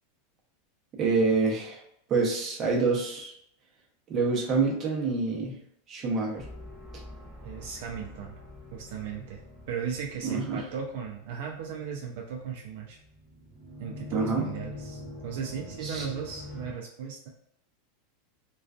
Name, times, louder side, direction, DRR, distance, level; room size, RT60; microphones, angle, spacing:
voice 1, 1.0-1.8 2.1-3.3 4.1-5.5 5.9-6.5 10.2-10.6 14.1-14.4 15.8-16.0, right 4 dB, 30° right, -1 dB, 0.7 m, -26 dB
sound 1, 6.4-16.7, left 2 dB, ahead, 0.9 m, -45 dB
voice 2, 7.4-8.4 8.7-9.4 9.7-13.0 13.8-17.3, right 7 dB, 70° right, 0 dB, 0.4 m, -36 dB
2.4 x 2.3 x 2.3 m, 0.76 s
supercardioid pair, 135°, 0 cm